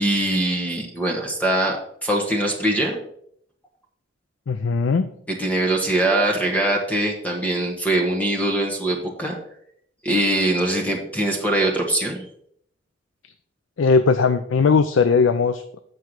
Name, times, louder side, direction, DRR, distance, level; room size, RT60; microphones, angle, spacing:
voice 1, 0.0-3.0 5.3-9.3 10.0-12.2, right 1 dB, 10° left, 1 dB, 1.3 m, -22 dB
voice 2, 4.5-5.1 13.8-15.8, left 5 dB, 85° left, 11 dB, 0.4 m, -19 dB
7.6 x 4.6 x 6.4 m, 0.69 s
head